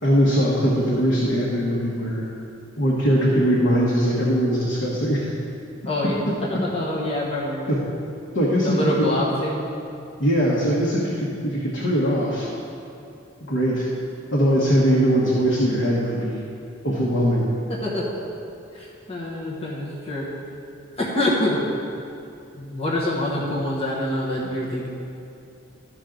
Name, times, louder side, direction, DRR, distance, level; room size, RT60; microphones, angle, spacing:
voice 1, 0.0-2.2 2.8-5.3 6.0-6.1 7.7-7.8 8.3-9.1 10.2-12.5 13.4-13.9 14.3-16.4 16.8-17.5, equal, 65° left, -5 dB, 1.3 m, -21 dB
voice 2, 5.8-6.1 6.5-7.6 8.6-9.6 17.7-18.1 18.7-20.2 21.0-21.6 22.5-24.9, left 1 dB, 30° left, -5 dB, 1.3 m, -25 dB
13.0 x 5.9 x 3.9 m, 2.6 s
head